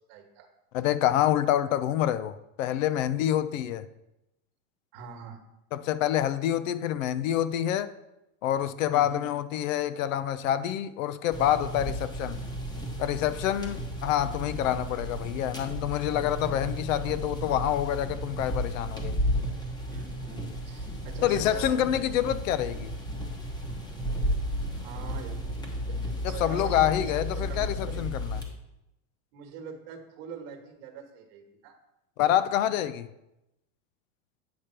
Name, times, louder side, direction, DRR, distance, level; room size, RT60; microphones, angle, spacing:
voice 1, 0.1-0.5 4.9-5.4 8.9-9.2 19.9-22.0 24.7-27.1 27.5-28.1 29.3-31.8, right 6 dB, 50° right, 1.4 m, -44 dB
voice 2, 0.7-3.9 5.7-7.9 8.4-12.4 13.0-19.2 21.2-22.9 26.2-28.4 32.2-33.1, left 11 dB, 75° left, 0.6 m, -27 dB
sound 1, 11.3-28.4, equal, 10° left, 1.0 m, -33 dB
8.7 x 5.1 x 4.4 m
supercardioid pair, 150°, 40 cm